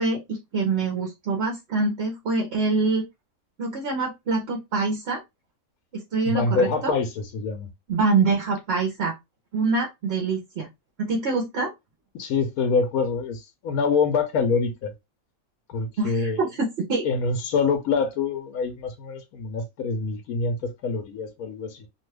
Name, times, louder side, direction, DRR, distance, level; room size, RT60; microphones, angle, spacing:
voice 1, 0.0-3.0 3.6-5.2 5.9-7.0 7.9-9.1 9.5-10.7 11.0-11.7 16.0-17.0, right 3 dB, 55° right, 0.9 m, -25 dB
voice 2, 6.3-7.7 12.1-14.9 15.7-16.4 17.0-21.9, left 4 dB, 80° left, 1.1 m, -25 dB
2.7 x 2.3 x 3.2 m
omnidirectional pair, 1.5 m